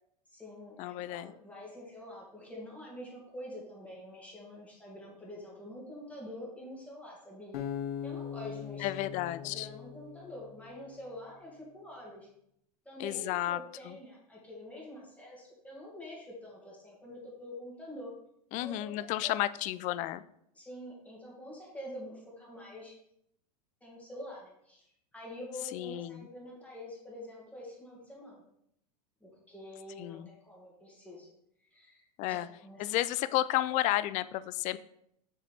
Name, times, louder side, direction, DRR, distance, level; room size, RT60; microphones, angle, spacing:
voice 1, 0.3-7.6 8.0-12.3 12.9-18.1 18.6-18.9 19.2-19.3 20.5-23.0 23.8-24.9 25.1-28.4 29.2-31.3 31.6-33.0, left 1 dB, 5° left, -4 dB, 2.2 m, -46 dB
voice 2, 0.8-1.3 8.8-9.7 13.0-13.6 13.9-14.0 18.5-20.2 25.7-26.3 30.0-30.3 32.2-32.5 32.8-34.8, left 15 dB, 35° left, 15 dB, 0.4 m, -32 dB
Acoustic guitar, 7.5-10.8, left 8 dB, 65° left, 1.0 m, -40 dB
6.9 x 4.9 x 3.5 m, 0.74 s
hypercardioid pair, 100°, 21 cm